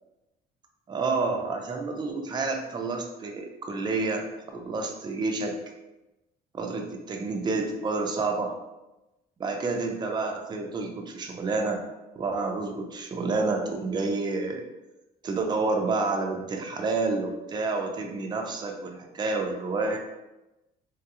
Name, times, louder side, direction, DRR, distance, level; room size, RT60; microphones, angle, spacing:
voice 1, 0.9-5.6 6.5-8.5 9.4-11.8 12.2-14.6 15.2-20.0, right 3 dB, 25° right, 2 dB, 0.4 m, -29 dB
3.1 x 2.3 x 2.8 m, 1.0 s
cardioid pair, 110°, 17 cm